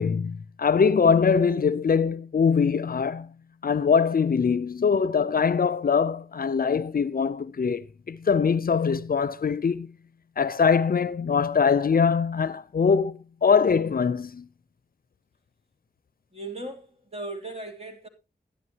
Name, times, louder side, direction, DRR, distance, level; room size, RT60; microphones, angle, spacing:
voice 1, 0.0-3.3 3.6-9.9 10.4-14.5, left 6 dB, 60° left, 0.6 m, -23 dB
voice 2, 16.3-18.1, right 2 dB, 35° right, 3.2 m, -37 dB
13.5 x 11.0 x 2.9 m
cardioid pair, 60°, 17 cm